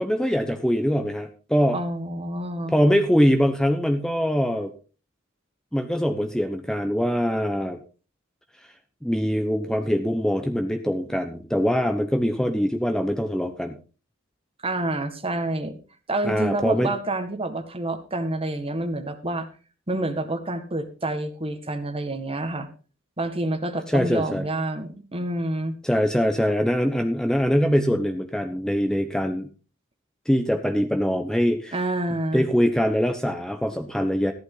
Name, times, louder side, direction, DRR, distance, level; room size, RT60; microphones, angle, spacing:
voice 1, 0.0-1.8 2.7-4.7 5.7-7.8 9.0-13.8 16.2-16.9 23.9-24.4 25.8-29.5 30.3-31.8 32.3-34.3, equal, 5° left, 6 dB, 1.1 m, -23 dB
voice 2, 1.7-2.8 14.6-15.8 16.1-19.5 19.9-22.7 23.2-25.8 31.7-32.5, right 2 dB, 30° right, 8 dB, 1.8 m, -28 dB
14.5 x 11.5 x 3.9 m, 0.36 s
head